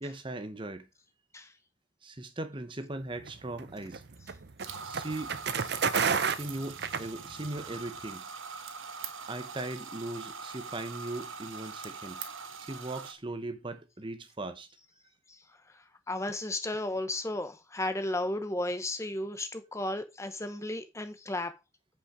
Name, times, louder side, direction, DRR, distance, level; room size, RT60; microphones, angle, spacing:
voice 1, 0.0-0.9 2.0-4.0 4.8-5.4 6.2-8.3 9.3-12.2 12.6-14.7, right 2 dB, 25° right, 0.8 m, -39 dB
sound 1, 3.2-7.6, right 6 dB, 55° right, 0.7 m, -31 dB
sound 2, 4.6-13.1, right 5 dB, 80° right, 1.2 m, -43 dB
voice 2, 16.1-21.5, left 1 dB, 15° left, 0.8 m, -34 dB
8.6 x 5.4 x 4.9 m
head